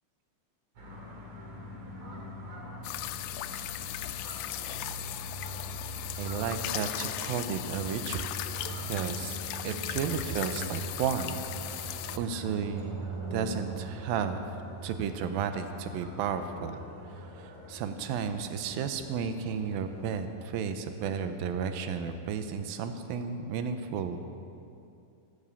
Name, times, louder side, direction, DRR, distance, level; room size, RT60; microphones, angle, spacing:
sound 1, 0.8-20.3, right 2 dB, 50° right, 3.3 m, -42 dB
sound 2, 2.8-12.2, left 13 dB, 80° left, 2.2 m, -37 dB
voice 1, 6.2-8.2 8.9-14.4 14.8-16.8 17.2-24.2, right 7 dB, 80° right, 8 dB, 2.6 m, -33 dB
13.5 x 12.5 x 7.0 m, 2.6 s
omnidirectional pair, 4.1 m